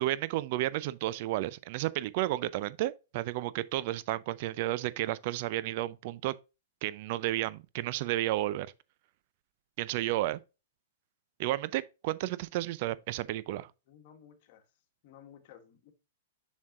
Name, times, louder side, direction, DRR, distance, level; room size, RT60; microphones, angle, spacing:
voice 1, 0.0-6.3 6.8-8.7 9.8-10.4 11.4-13.7, right 15 dB, 50° right, 0.4 m, -32 dB
voice 2, 13.9-14.6 15.0-15.9, left 9 dB, 50° left, 1.5 m, -55 dB
7.3 x 6.2 x 2.5 m
hypercardioid pair, 125°, 0 cm